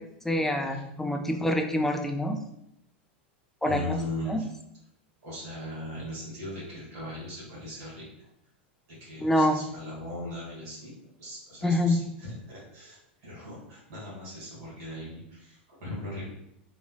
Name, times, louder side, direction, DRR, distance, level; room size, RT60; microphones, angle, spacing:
voice 1, 0.2-2.4 3.6-4.0 4.3-4.4 9.2-9.6 11.6-12.0, left 1 dB, 5° left, 4 dB, 0.3 m, -26 dB
voice 2, 3.7-4.5 5.2-8.3 8.9-10.9 11.2-16.2, left 1 dB, 50° right, -7 dB, 1.4 m, -38 dB
3.1 x 2.0 x 2.3 m, 0.79 s
hypercardioid pair, 95°, 6 cm